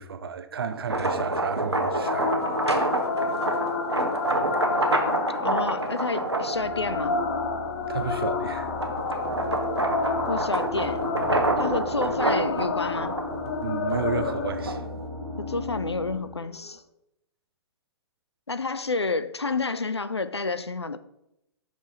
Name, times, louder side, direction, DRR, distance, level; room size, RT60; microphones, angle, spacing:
voice 1, 0.0-2.4 2.7-3.0 7.9-8.7 13.6-14.8, right 6 dB, 65° right, 0.6 m, -32 dB
sound 1, 0.7-7.3 7.9-15.0, right 2 dB, 85° right, 0.9 m, -28 dB
sound 2, 1.7-16.7, left 4 dB, 50° left, 0.7 m, -31 dB
voice 2, 5.4-7.2 10.3-11.0 11.6-13.2 15.4-16.8 18.5-21.0, left 3 dB, 85° left, 0.4 m, -29 dB
sound 3, 6.5-16.2, left 1 dB, 10° right, 2.5 m, -38 dB
6.9 x 6.0 x 2.8 m
figure-of-eight pair, 115°, 14 cm